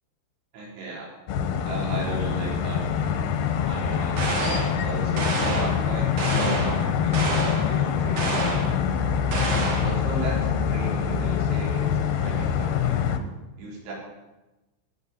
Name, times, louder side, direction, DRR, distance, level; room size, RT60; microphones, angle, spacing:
voice 1, 0.5-1.1 1.6-2.9 3.7-4.5 4.8-8.8 9.2-9.3 9.8-13.0 13.6-13.9, right 3 dB, 85° right, -4 dB, 7.4 m, -36 dB
sound 1, 1.3-13.2, left 8 dB, 70° left, 2.6 m, -25 dB
sound 2, 4.2-4.8 5.2-5.8 6.2-6.8 7.1-7.7 8.2-8.7 9.3-10.0, right 2 dB, 50° right, 4.4 m, -28 dB
18.5 x 7.6 x 9.9 m, 1.1 s
omnidirectional pair, 5.4 m